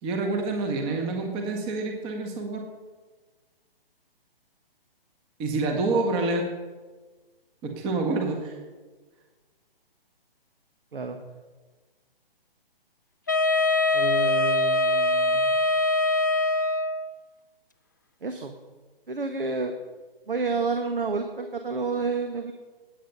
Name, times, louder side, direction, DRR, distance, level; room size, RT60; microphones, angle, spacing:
voice 1, 0.0-2.7 5.4-6.5 7.6-8.6, right 3 dB, 20° right, 3 dB, 1.6 m, -27 dB
Wind instrument woodwind instrument, 13.3-17.1, left 2 dB, 20° left, 0.3 m, -23 dB
voice 2, 13.9-15.5 18.2-18.5 19.1-19.7 20.3-22.5, right 4 dB, 65° right, 6 dB, 1.4 m, -30 dB
19.5 x 8.8 x 5.5 m, 1.4 s
figure-of-eight pair, 130°, 30 cm